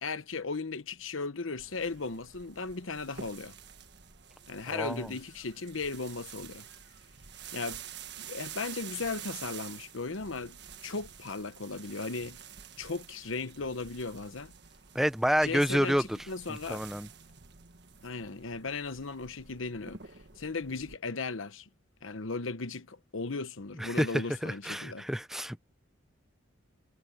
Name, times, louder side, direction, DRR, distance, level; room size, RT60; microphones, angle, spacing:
voice 1, 0.0-3.6 4.5-6.6 7.5-7.8 8.2-12.4 12.8-14.5 15.4-16.8 18.0-20.0 20.4-21.7 22.0-25.1, left 4 dB, 80° left, 1.1 m, -36 dB
sound 1, 1.6-21.0, right 8 dB, 55° right, 1.5 m, -49 dB
voice 2, 4.7-5.1 14.9-16.2 16.5-17.1 23.8-25.6, equal, ahead, 0.7 m, -29 dB
head